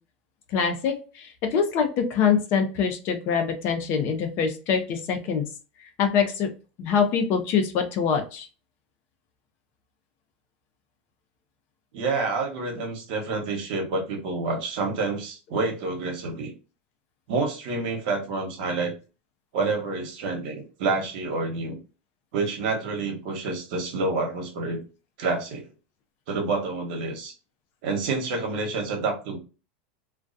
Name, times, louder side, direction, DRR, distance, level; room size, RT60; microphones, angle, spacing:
voice 1, 0.5-5.4 5.8-6.5 6.8-8.5, left 6 dB, 45° left, 6 dB, 0.5 m, -24 dB
voice 2, 11.9-16.5 17.3-18.9 19.5-21.8 22.3-24.8 25.2-25.6 26.3-27.3 27.8-29.4, right 3 dB, 65° right, 2 dB, 0.9 m, -28 dB
2.3 x 2.2 x 2.5 m, 0.33 s
supercardioid pair, 130°, 5 cm